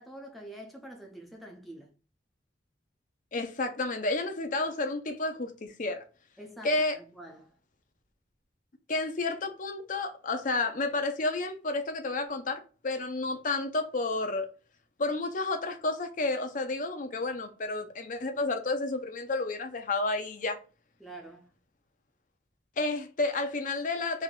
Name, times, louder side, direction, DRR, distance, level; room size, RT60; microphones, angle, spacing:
voice 1, 0.0-2.0 6.4-7.6 21.0-21.5, right 1 dB, ahead, 0.5 m, -46 dB
voice 2, 3.3-6.0 6.6-7.0 8.9-14.5 15.0-20.6 22.8-24.2, left 2 dB, 45° left, 0.6 m, -31 dB
3.4 x 2.7 x 3.7 m
head